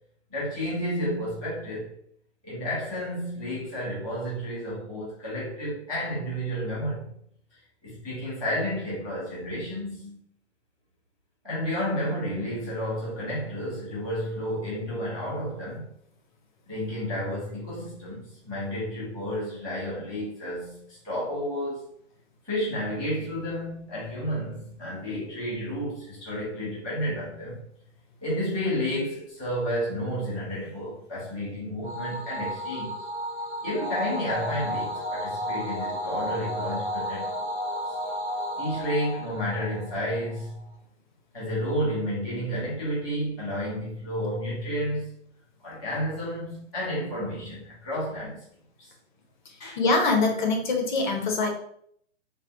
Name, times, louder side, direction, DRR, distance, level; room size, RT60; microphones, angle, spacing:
voice 1, 0.3-1.9 2.4-7.1 7.8-10.2 11.4-15.9 16.7-21.8 22.4-27.6 28.2-33.1 33.6-37.5 38.5-40.7 41.3-45.1 45.6-48.4 48.8-48.9 49.6-49.8, equal, ahead, -21 dB, 0.4 m, -31 dB
sound 1, 31.8-40.4, equal, 65° right, 0.9 m, -33 dB
voice 2, 49.8-51.5, left 3 dB, 40° left, 3 dB, 0.6 m, -23 dB
3.5 x 2.2 x 2.6 m, 0.67 s
hypercardioid pair, 140°, 36 cm